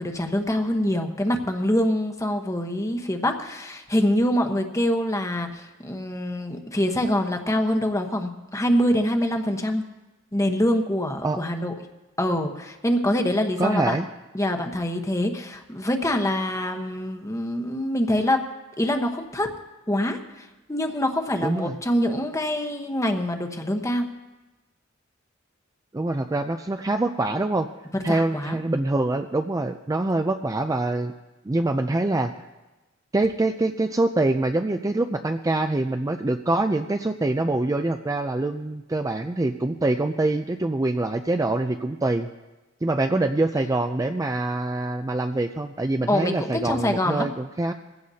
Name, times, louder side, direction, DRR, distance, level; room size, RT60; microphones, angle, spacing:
voice 1, 0.0-9.8 10.3-11.7 12.2-14.0 14.3-18.4 18.8-19.5 19.9-20.2 20.7-24.1 27.9-28.6 46.1-47.3, left 1 dB, 15° left, 5 dB, 1.1 m, -25 dB
voice 2, 13.6-14.1 21.4-21.8 25.9-27.7 28.0-31.1 31.5-32.3 33.1-42.3 42.8-47.7, right 2 dB, 15° right, 6 dB, 0.4 m, -25 dB
21.5 x 16.0 x 2.8 m, 1.1 s
head